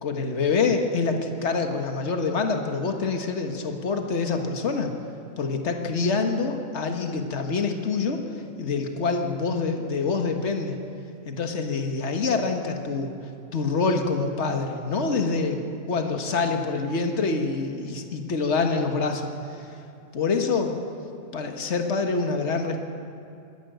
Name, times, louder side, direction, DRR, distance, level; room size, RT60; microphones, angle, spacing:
voice 1, 0.0-4.9 5.4-8.2 8.6-10.8 11.3-13.1 13.5-15.6 15.9-19.3 20.1-20.8 21.3-22.8, left 4 dB, 55° left, 4 dB, 1.8 m, -26 dB
20.0 x 15.0 x 9.3 m, 2.6 s
omnidirectional pair, 1.5 m